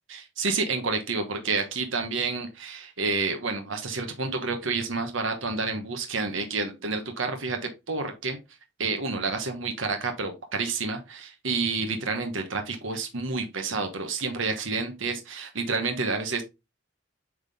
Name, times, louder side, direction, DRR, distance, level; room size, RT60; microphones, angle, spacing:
voice 1, 0.1-8.4 8.8-16.4, right 4 dB, 80° right, 6 dB, 1.2 m, -29 dB
8.0 x 3.7 x 3.5 m, 0.24 s
head